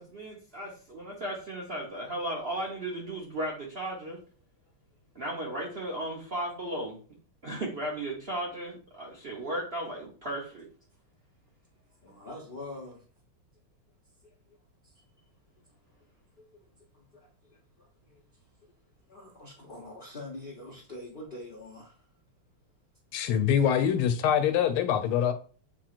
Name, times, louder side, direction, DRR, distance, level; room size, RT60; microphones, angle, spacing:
voice 1, 0.0-4.2 5.1-7.0 7.4-10.7, right 1 dB, 80° right, 0.5 m, -35 dB
voice 2, 12.0-13.0 14.2-14.6 14.8-14.9 16.4-16.6 16.9-18.2 19.1-22.1, left 2 dB, 50° left, 0.6 m, -45 dB
voice 3, 23.1-25.3, left 8 dB, 85° left, 1.5 m, -24 dB
7.3 x 3.0 x 2.4 m
omnidirectional pair, 2.3 m